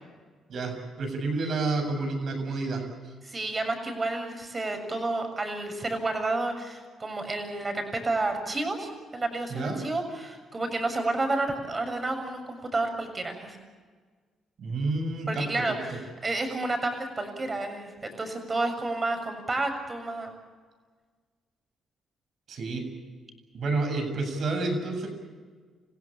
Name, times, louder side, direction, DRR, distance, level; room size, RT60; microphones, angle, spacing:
voice 1, 0.5-2.8 9.5-9.8 14.6-15.8 22.5-22.8 23.5-25.1, right 3 dB, 60° right, 6 dB, 7.4 m, -29 dB
voice 2, 3.2-13.6 15.3-20.4, right 2 dB, 30° right, 5 dB, 7.0 m, -30 dB
29.5 x 16.0 x 8.6 m, 1.5 s
cardioid pair, 90°, 0 cm